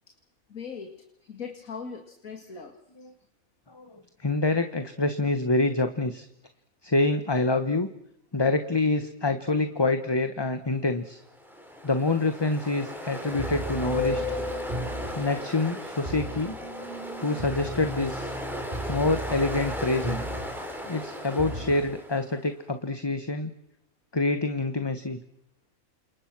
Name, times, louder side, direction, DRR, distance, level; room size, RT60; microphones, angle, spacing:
voice 1, 0.5-2.8, left 5 dB, 80° left, 5 dB, 2.5 m, -40 dB
voice 2, 3.7-6.3 6.8-7.9 8.3-11.2 11.8-14.4 15.2-16.6 17.2-18.3 18.9-20.2 20.9-23.5 24.1-25.2, left 2 dB, 20° left, 9 dB, 1.2 m, -26 dB
Ocean, 11.3-22.4, left 2 dB, ahead, 4.8 m, -35 dB
sound 1, 13.3-15.2 16.1-16.5 17.4-20.6 21.4-21.8, right 1 dB, 25° right, 3.6 m, -36 dB
30.0 x 27.5 x 6.1 m, 0.78 s
omnidirectional pair, 1.4 m